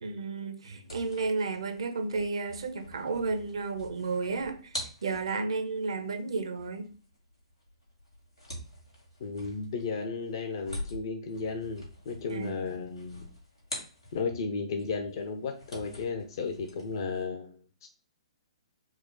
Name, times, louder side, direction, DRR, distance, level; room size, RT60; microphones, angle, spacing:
voice 1, 0.0-6.9 12.3-12.7, right 4 dB, 60° right, 0.6 m, -32 dB
sound 1, 0.8-14.5 14.8-17.3, left 1 dB, 80° left, 2.2 m, -45 dB
voice 2, 9.2-13.2 14.1-17.5 17.8-17.9, left 4 dB, 50° left, 0.6 m, -34 dB
4.8 x 2.1 x 3.8 m
figure-of-eight pair, 120°, 3 cm